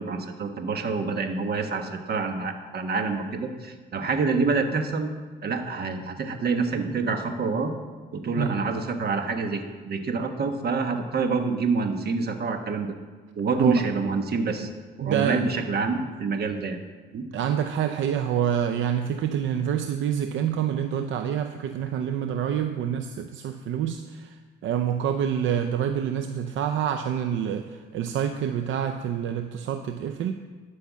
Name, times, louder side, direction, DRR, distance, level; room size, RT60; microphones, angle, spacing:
voice 1, 0.0-5.1 5.4-7.7 8.1-12.9 13.4-14.7 15.0-16.8 17.1-17.2, right 4 dB, 55° right, 6 dB, 1.3 m, -27 dB
voice 2, 15.0-15.4 17.3-30.3, right 9 dB, 75° right, 7 dB, 0.6 m, -27 dB
12.0 x 5.6 x 7.4 m, 1.4 s
cardioid pair, 90°, 20 cm